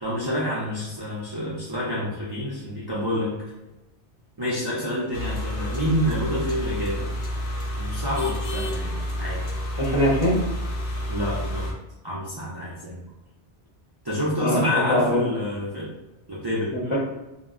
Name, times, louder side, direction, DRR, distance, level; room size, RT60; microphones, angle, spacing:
voice 1, 0.0-3.3 4.4-7.1 7.8-9.4 11.1-11.7 12.0-13.0 14.0-15.9 16.3-16.7, equal, 40° right, -6 dB, 0.3 m, -28 dB
sound 1, 5.1-11.7, equal, 85° left, 0.9 m, -29 dB
voice 2, 9.8-10.4 14.4-15.2 16.7-17.0, left 1 dB, 35° left, -7 dB, 0.5 m, -22 dB
2.1 x 2.1 x 3.5 m, 1.0 s
omnidirectional pair, 1.1 m